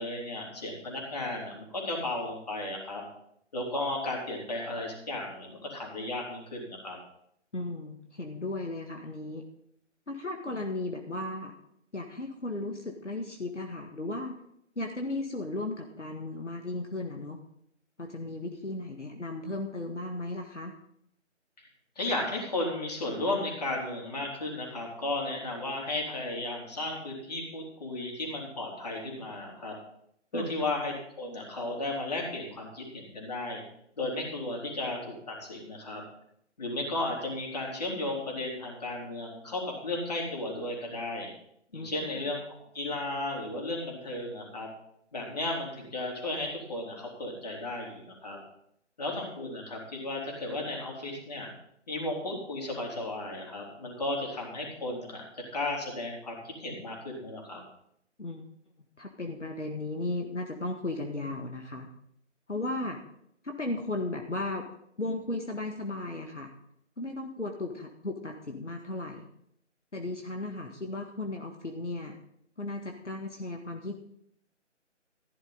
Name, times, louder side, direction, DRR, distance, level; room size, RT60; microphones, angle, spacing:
voice 1, 0.0-3.0 3.5-7.0 22.0-29.7 30.3-33.6 34.0-36.0 36.6-41.3 41.7-44.7 45.1-48.4 49.0-51.5 51.9-55.3 55.5-57.6, left 2 dB, 35° left, -1 dB, 3.6 m, -34 dB
voice 2, 7.5-9.4 10.1-11.5 11.9-14.4 14.8-17.4 18.0-20.7 30.3-30.5 41.7-41.9 58.2-58.5 59.0-61.9 62.5-63.0 63.4-64.7 65.0-66.5 67.0-69.2 69.9-72.2 72.6-73.9, left 2 dB, 75° left, 2 dB, 1.8 m, -35 dB
15.0 x 11.0 x 4.1 m, 0.72 s
figure-of-eight pair, 155°, 37 cm